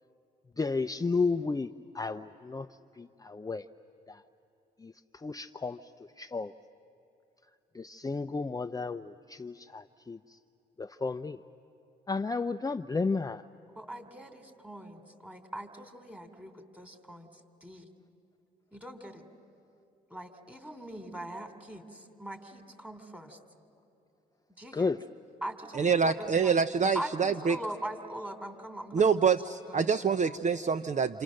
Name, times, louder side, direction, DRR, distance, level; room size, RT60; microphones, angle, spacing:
voice 1, 0.6-1.7 1.9-2.7 3.0-3.7 4.1-4.2 4.8-4.9 5.2-5.8 6.2-6.5 7.7-10.4 10.8-11.4 12.1-13.4 24.7-25.0, left 4 dB, 20° left, 9 dB, 0.6 m, -32 dB
voice 2, 13.7-17.3 17.6-17.9 18.7-19.2 20.1-23.4 24.6-24.9 25.4-26.7 26.9-30.0, right 1 dB, 5° right, 6 dB, 3.1 m, -42 dB
voice 3, 25.7-27.6 28.9-31.2, right 6 dB, 40° right, 11 dB, 0.7 m, -26 dB
28.5 x 27.5 x 6.5 m, 2.8 s
supercardioid pair, 55°, 20 cm